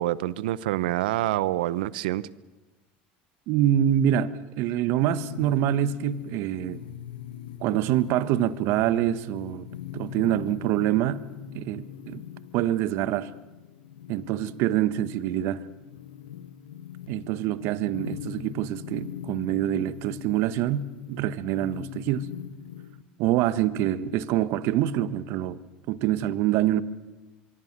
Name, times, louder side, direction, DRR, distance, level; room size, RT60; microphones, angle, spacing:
voice 1, 0.0-2.2, right 15 dB, 80° right, 0.9 m, -26 dB
voice 2, 3.5-6.8 7.6-9.7 9.9-11.2 11.5-12.2 12.5-13.3 14.1-15.6 17.1-22.3 23.2-25.6 25.9-26.8, right 12 dB, 65° right, 1.4 m, -25 dB
sound 1, 5.0-23.0, left 10 dB, 90° left, 1.7 m, -41 dB
24.5 x 24.0 x 7.5 m
hypercardioid pair, 95°, 5 cm